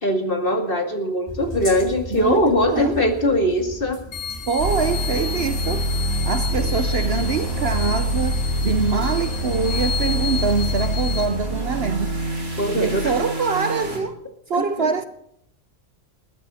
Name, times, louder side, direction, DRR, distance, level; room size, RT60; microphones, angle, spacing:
voice 1, 0.0-4.0 12.6-13.0 14.5-14.9, left 1 dB, 40° left, 2.3 m, -21 dB
sound 1, 1.3-11.3, right 1 dB, 15° left, 2.3 m, -37 dB
voice 2, 2.1-3.0 4.5-5.9 6.3-12.1 12.5-14.2 14.5-15.1, right 5 dB, 55° right, 0.9 m, -24 dB
sound 2, 4.1-11.3, left 8 dB, 85° left, 1.9 m, -33 dB
sound 3, 4.6-14.0, right 1 dB, 85° right, 5.4 m, -25 dB
20.5 x 14.0 x 4.3 m
omnidirectional pair, 1.4 m